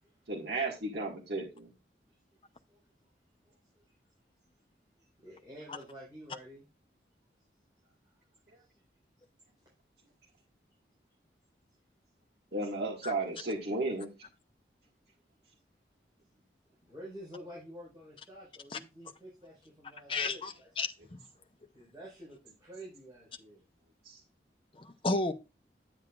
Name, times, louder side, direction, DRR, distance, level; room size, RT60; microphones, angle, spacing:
voice 1, 0.3-1.7 12.5-14.1 24.0-24.2, right 2 dB, 70° right, 1.8 m, -34 dB
voice 2, 3.4-3.8 4.4-4.5 5.0-6.6 7.8-7.9 8.6-8.8 16.8-20.7 21.7-23.6, equal, 20° right, 4.4 m, -50 dB
voice 3, 20.1-20.9 24.7-25.3, left 3 dB, 30° left, 0.6 m, -32 dB
9.6 x 7.9 x 2.4 m
head